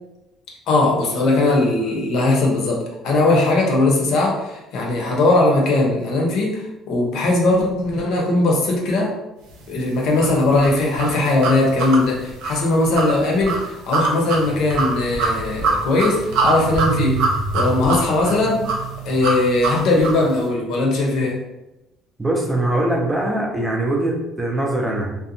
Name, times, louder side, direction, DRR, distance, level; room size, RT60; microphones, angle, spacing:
voice 1, 0.7-9.1 9.7-17.3 17.5-18.7 19.0-21.4, left 2 dB, 65° left, -1 dB, 0.7 m, -19 dB
sound 1, 10.2-20.3, right 3 dB, 85° right, 0.5 m, -24 dB
voice 2, 22.2-25.2, right 1 dB, 15° right, -1 dB, 0.4 m, -22 dB
2.6 x 2.1 x 2.6 m, 0.95 s
cardioid pair, 150°, 0 cm